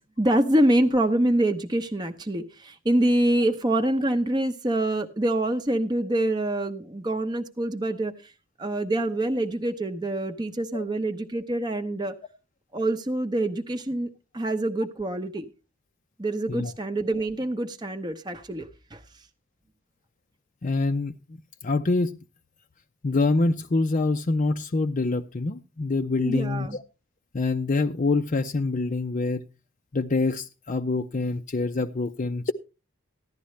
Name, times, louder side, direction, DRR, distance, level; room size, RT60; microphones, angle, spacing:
voice 1, 0.2-8.3 8.6-12.2 12.7-14.1 14.3-15.5 16.2-19.0 26.2-26.8, right 1 dB, 20° right, 0.8 m, -25 dB
voice 2, 20.6-21.2 21.6-22.1 23.0-26.8 27.3-29.4 29.9-32.5, left 3 dB, 40° left, 0.5 m, -25 dB
15.0 x 11.5 x 3.2 m
head